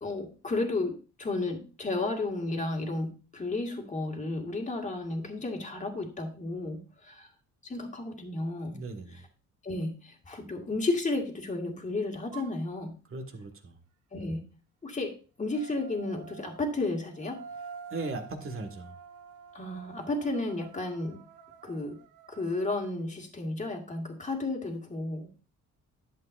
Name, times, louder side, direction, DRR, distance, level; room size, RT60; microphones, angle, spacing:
voice 1, 0.0-7.3 7.6-8.8 9.6-13.0 14.1-14.5 14.8-15.1 15.4-17.4 19.5-21.2 21.6-22.0 22.3-25.3, left 2 dB, 25° left, 3 dB, 1.9 m, -33 dB
voice 2, 8.7-9.2 13.1-13.8 17.9-18.9, right 3 dB, 45° right, 5 dB, 1.7 m, -38 dB
sound 1, 12.3-12.6 15.5-22.9, right 6 dB, 85° right, 1.0 m, -48 dB
11.0 x 7.8 x 2.6 m, 0.34 s
cardioid pair, 90°, 30 cm